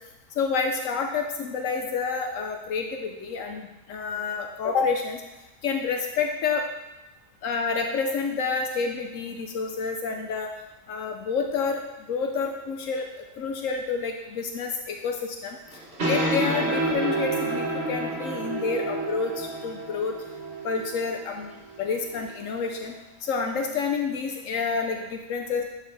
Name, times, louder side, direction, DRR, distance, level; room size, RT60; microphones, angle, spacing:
voice 1, 0.4-5.2 5.6-6.7 7.4-10.5 10.9-11.8 12.1-13.1 13.4-15.6 16.0-20.1 20.6-22.9 23.2-25.6, left 5 dB, 80° left, 3 dB, 1.1 m, -29 dB
sound 1, 15.7-22.9, right 2 dB, 55° right, 1.5 m, -30 dB
11.0 x 4.5 x 3.4 m, 0.98 s
omnidirectional pair, 1.3 m